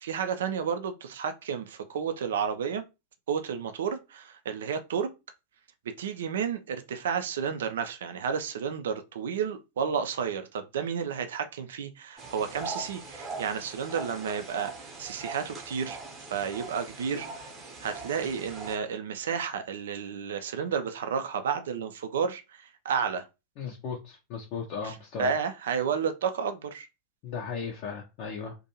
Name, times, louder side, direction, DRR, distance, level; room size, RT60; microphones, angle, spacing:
voice 1, 0.0-2.8 3.3-5.1 6.0-16.0 16.3-17.5 17.8-23.2 24.8-26.9, right 7 dB, 60° right, 0.3 m, -31 dB
sound 1, 12.2-18.8, right 3 dB, 25° right, 0.8 m, -41 dB
voice 2, 23.6-25.3 27.2-28.5, left 6 dB, 45° left, 0.6 m, -36 dB
2.5 x 2.2 x 2.8 m
figure-of-eight pair, 90°, 0 cm